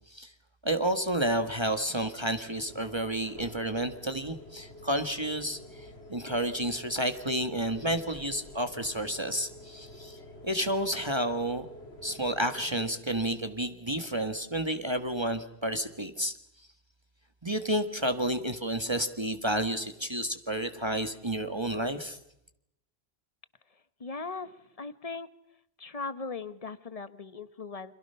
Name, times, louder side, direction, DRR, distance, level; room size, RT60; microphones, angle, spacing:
voice 1, 0.6-10.2 10.4-11.7 12.0-16.3 17.4-22.2, right 1 dB, 25° right, 7 dB, 1.8 m, -30 dB
sound 1, 2.7-12.9, left 1 dB, 85° left, 4.1 m, -48 dB
voice 2, 24.0-25.3 25.8-27.9, left 4 dB, 35° left, 14 dB, 1.3 m, -39 dB
29.5 x 26.5 x 5.7 m, 0.79 s
omnidirectional pair, 1.1 m